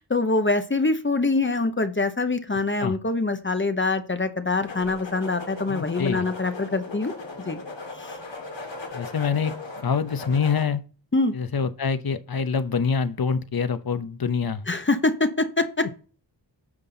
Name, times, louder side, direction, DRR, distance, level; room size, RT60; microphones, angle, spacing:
voice 1, 0.0-7.1 7.4-7.6 8.0-8.2 11.1-11.3 14.7-15.9, left 3 dB, 25° left, 0.8 m, -24 dB
sound 1, 4.6-10.6, left 3 dB, 75° left, 2.3 m, -38 dB
voice 2, 5.7-6.2 8.9-9.5 9.8-10.8 11.3-14.6, left 6 dB, 50° left, 0.9 m, -25 dB
9.8 x 5.9 x 3.9 m
wide cardioid pair, 100°, 45 cm